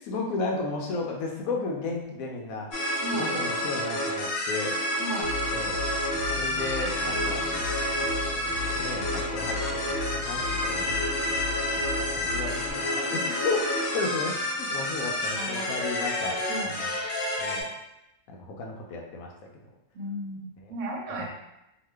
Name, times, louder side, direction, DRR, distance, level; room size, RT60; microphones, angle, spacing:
voice 1, 0.0-2.7 3.1-4.8 5.5-5.8 6.4-7.4 8.6-11.1 12.0-16.9 17.4-17.7 18.3-19.6 21.2-21.3, left 3 dB, 85° left, 0 dB, 1.1 m, -34 dB
sound 1, 2.7-17.6, left 1 dB, 65° left, 0.7 m, -29 dB
voice 2, 3.0-3.3 5.0-5.3 15.4-15.7 16.5-16.8 19.9-21.3, right 1 dB, 70° right, 0 dB, 1.0 m, -35 dB
sound 2, 5.2-12.7, left 4 dB, 35° right, 0.8 m, -37 dB
Keyboard (musical), 6.2-15.2, equal, 20° left, 0.6 m, -47 dB
2.9 x 2.2 x 3.3 m, 0.87 s
omnidirectional pair, 1.4 m